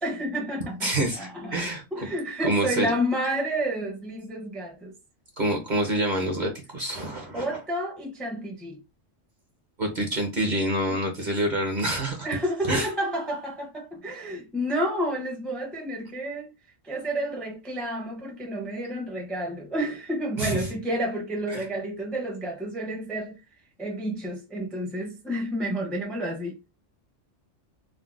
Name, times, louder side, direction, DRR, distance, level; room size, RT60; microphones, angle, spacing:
voice 1, 0.0-4.9 7.3-8.8 12.2-16.5 16.8-23.4 23.8-26.7, equal, ahead, 0.4 m, -30 dB
voice 2, 0.8-1.8 2.4-2.9 5.4-7.6 9.8-12.3 12.7-12.9 20.4-20.7 21.5-21.6, right 1 dB, 45° right, 0.7 m, -27 dB
3.7 x 2.0 x 2.4 m
omnidirectional pair, 1.3 m